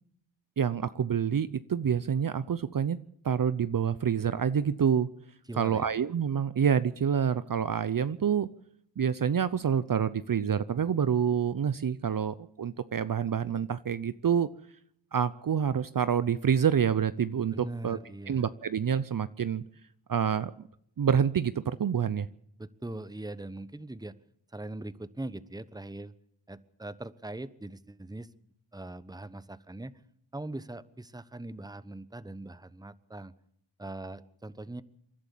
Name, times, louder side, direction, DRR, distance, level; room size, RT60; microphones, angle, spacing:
voice 1, 0.6-3.0 3.2-5.1 5.6-8.5 9.0-14.5 15.1-18.0 18.3-19.6 20.1-20.5 21.0-22.3, right 7 dB, 45° right, 14 dB, 0.8 m, -27 dB
voice 2, 5.5-5.9 17.5-18.5 22.6-24.1 24.5-26.1 26.5-28.3 28.7-29.9 30.3-33.3 33.8-34.8, right 2 dB, 10° right, 15 dB, 1.1 m, -41 dB
28.0 x 11.5 x 8.4 m, 0.71 s
cardioid pair, 55°, 47 cm